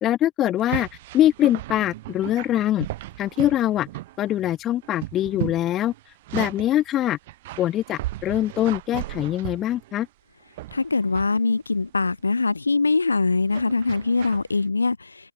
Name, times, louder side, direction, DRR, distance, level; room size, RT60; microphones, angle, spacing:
voice 1, 0.0-0.9 1.1-2.9 3.2-3.9 4.2-5.9 6.3-7.2 7.6-10.1, left 13 dB, 15° left, 0.7 m, -23 dB
sound 1, 0.6-4.5 4.7-6.8 7.3-10.1 10.6-11.3 11.8-12.1 13.5-14.5, right 17 dB, 30° right, 4.2 m, -35 dB
voice 2, 10.7-15.3, left 3 dB, 70° left, 1.0 m, -23 dB
figure-of-eight pair, 135°, 0 cm